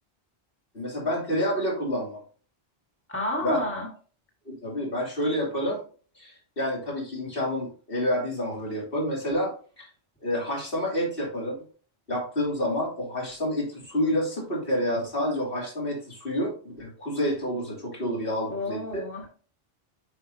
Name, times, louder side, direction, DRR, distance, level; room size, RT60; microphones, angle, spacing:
voice 1, 0.7-2.2 3.4-3.6 4.5-5.8 6.1-9.9 10.2-11.5 12.1-19.0, left 1 dB, 65° left, -3 dB, 2.9 m, -28 dB
voice 2, 3.1-3.9 18.5-19.3, left 1 dB, 10° left, 0 dB, 1.6 m, -30 dB
8.2 x 5.5 x 2.7 m, 0.40 s
omnidirectional pair, 1.0 m